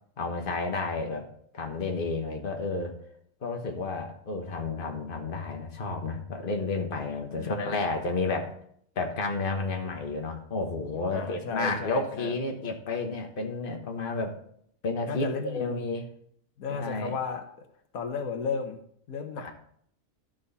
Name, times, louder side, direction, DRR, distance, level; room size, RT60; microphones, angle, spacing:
voice 1, 0.2-1.3 1.5-3.0 3.4-8.5 8.9-14.4 14.8-16.0 16.7-17.2 19.4-19.5, left 3 dB, 40° left, 3 dB, 1.4 m, -31 dB
voice 2, 7.3-7.8 11.1-12.4 15.1-15.8 16.6-17.4 17.9-18.8 19.1-19.5, left 5 dB, 85° left, 6 dB, 1.5 m, -34 dB
12.5 x 6.3 x 4.1 m, 0.66 s
omnidirectional pair, 1.4 m